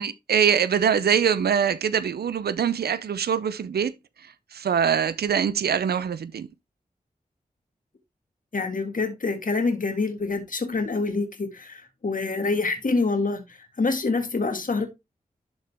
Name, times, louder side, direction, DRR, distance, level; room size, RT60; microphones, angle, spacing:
voice 1, 0.0-3.9 4.5-6.5, right 7 dB, 90° right, 0.5 m, -23 dB
voice 2, 8.5-14.9, left 3 dB, 60° left, 1.8 m, -26 dB
11.5 x 3.9 x 3.4 m
cardioid pair, 40°, 16 cm